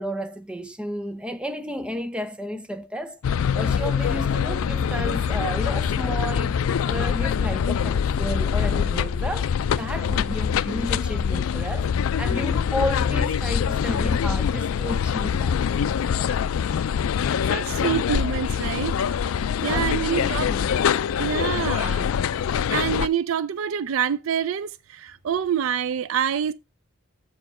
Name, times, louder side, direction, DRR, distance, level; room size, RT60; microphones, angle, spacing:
voice 1, 0.0-3.2 3.5-11.9 12.2-15.6 19.3-19.4 19.7-20.8 21.7-21.9, equal, 5° right, 0.5 m, -32 dB
sound 1, 3.2-23.1, left 7 dB, 80° left, 0.4 m, -24 dB
voice 2, 17.5-19.2 19.6-20.5 21.2-22.1 22.7-26.5, right 8 dB, 70° right, 0.4 m, -26 dB
7.3 x 4.8 x 4.3 m
head